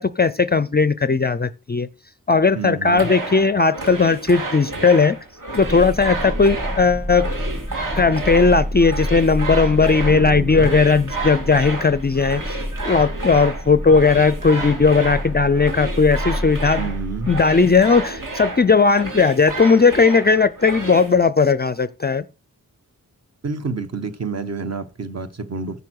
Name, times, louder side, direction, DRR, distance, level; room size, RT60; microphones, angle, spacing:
voice 1, 0.0-1.9 2.3-5.2 5.5-7.3 8.0-16.8 17.3-22.2, left 4 dB, 30° left, 0.4 m, -17 dB
voice 2, 2.5-3.1 10.1-10.7 16.8-17.3 23.4-25.8, right 4 dB, 45° right, 1.1 m, -29 dB
sound 1, 2.9-21.1, right 2 dB, 60° right, 2.4 m, -31 dB
sound 2, 5.6-18.4, equal, 20° right, 2.6 m, -29 dB
10.5 x 5.2 x 6.3 m
wide cardioid pair, 155°, 35 cm